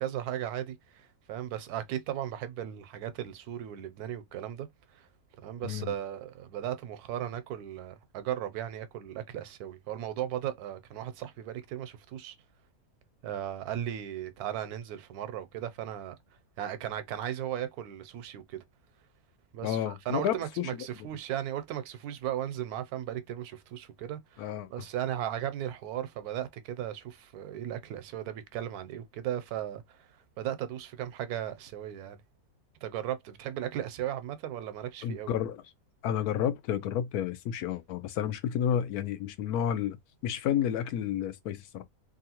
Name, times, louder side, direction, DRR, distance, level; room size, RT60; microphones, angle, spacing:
voice 1, 0.0-4.7 4.9-5.1 5.4-12.4 13.2-16.1 16.6-18.6 19.5-30.0 30.4-32.2 32.8-35.3, right 11 dB, 80° right, 1.1 m, -36 dB
voice 2, 5.6-5.9 19.6-21.1 24.4-24.7 35.0-35.6 36.0-40.0 40.2-41.8, left 9 dB, 80° left, 1.1 m, -31 dB
2.9 x 2.5 x 2.8 m
omnidirectional pair, 1.6 m